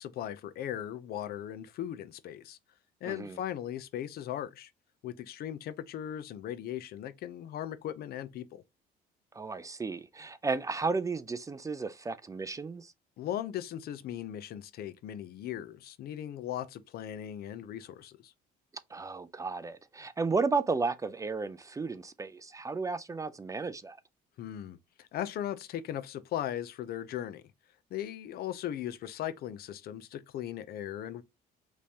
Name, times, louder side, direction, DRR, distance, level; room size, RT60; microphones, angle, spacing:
voice 1, 0.0-2.6 3.0-4.7 5.0-8.6 13.2-18.3 24.4-27.4 27.9-31.2, left 11 dB, 65° left, 0.7 m, -38 dB
voice 2, 3.0-3.4 9.3-12.9 18.9-24.0, right 4 dB, 20° right, 0.4 m, -33 dB
5.2 x 3.3 x 2.8 m
cardioid pair, 110°, 17 cm